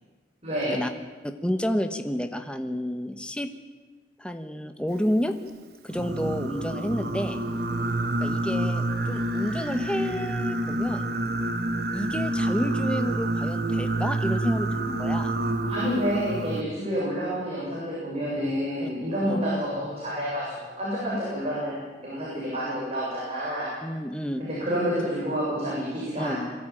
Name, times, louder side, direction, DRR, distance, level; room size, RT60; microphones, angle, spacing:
voice 1, 0.4-0.8 15.7-23.7 24.4-26.4, equal, 35° right, -7 dB, 7.4 m, -29 dB
voice 2, 1.2-3.5 4.2-5.3 5.8-7.4 8.2-11.1 11.9-15.3 18.8-18.9 19.2-19.4 23.8-24.4 26.2-26.4, equal, 5° left, 7 dB, 1.1 m, -30 dB
Singing, 5.9-16.6, right 1 dB, 60° right, 1.7 m, -28 dB
22.0 x 14.0 x 9.1 m, 1.3 s
head